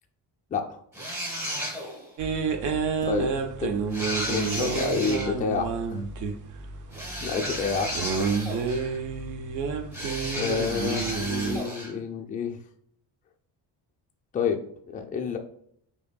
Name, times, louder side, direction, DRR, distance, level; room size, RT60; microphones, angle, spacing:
sound 1, 0.9-2.1 3.9-5.3 6.9-9.0 9.9-11.9, equal, 5° right, 0.8 m, -33 dB
sound 2, 2.2-11.6, right 5 dB, 45° right, 0.5 m, -30 dB
voice 1, 3.0-3.3 4.3-6.0 7.2-8.2 10.3-12.6 14.3-15.4, left 5 dB, 20° left, 3 dB, 0.3 m, -29 dB
5.1 x 2.7 x 2.2 m, 0.66 s
cardioid pair, 135°, 46 cm